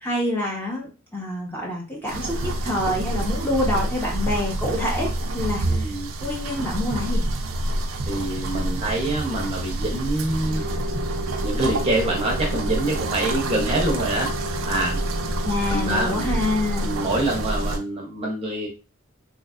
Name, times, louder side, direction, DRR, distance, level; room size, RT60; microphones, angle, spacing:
voice 1, 0.0-5.9 6.2-7.2 15.4-16.9, left 1 dB, 10° left, -4 dB, 1.0 m, -27 dB
sound 1, 2.1-17.8, right 1 dB, 90° right, 0.5 m, -27 dB
voice 2, 5.6-6.1 8.0-10.6 11.4-14.3 14.6-15.0 15.7-16.3 16.8-18.7, right 1 dB, 30° right, -1 dB, 0.8 m, -26 dB
3.3 x 3.1 x 2.4 m, 0.29 s
head